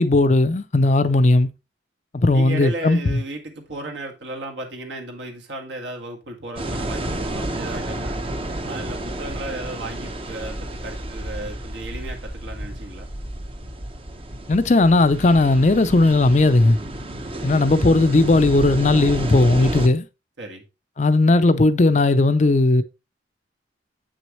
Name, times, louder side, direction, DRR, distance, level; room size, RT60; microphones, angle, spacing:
voice 1, 0.0-1.5 2.1-3.2 14.5-16.8 17.4-20.1 21.0-22.8, left 2 dB, 40° left, 0.5 m, -17 dB
voice 2, 2.3-8.2 8.7-13.1 17.6-17.8 20.4-20.7, right 1 dB, 75° right, 1.9 m, -34 dB
sound 1, 6.6-19.9, right 1 dB, 30° right, 0.8 m, -31 dB
7.8 x 6.2 x 3.0 m
head